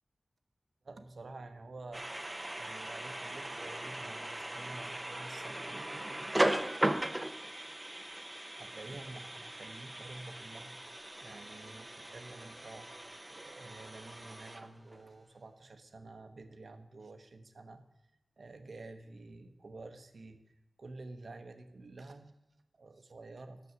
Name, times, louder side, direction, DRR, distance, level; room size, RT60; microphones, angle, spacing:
voice 1, 0.8-6.4 8.6-10.8 11.2-17.8 18.4-20.4 20.8-22.3 22.8-23.6, right 2 dB, 75° right, 8 dB, 0.8 m, -50 dB
sound 1, 1.9-15.1, right 1 dB, 20° right, 0.6 m, -38 dB
9.4 x 6.9 x 6.8 m, 0.91 s
wide cardioid pair, 75°, 0 cm